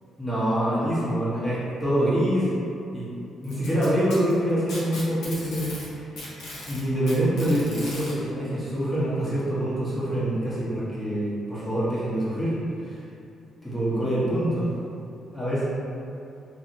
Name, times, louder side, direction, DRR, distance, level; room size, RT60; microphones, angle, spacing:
voice 1, 0.2-2.5 2.9-3.1 3.4-5.7 6.7-12.6 12.8-13.0 13.6-14.7 15.3-15.6, right 1 dB, 5° left, -10 dB, 1.0 m, -25 dB
Packing tape duct tape, 3.4-5.9 6.2-8.1 9.2-9.3 9.9-10.0 10.8-10.9, left 2 dB, 90° left, 0.7 m, -38 dB
2.7 x 2.7 x 2.6 m, 2.6 s
cardioid pair, 90°, 0 cm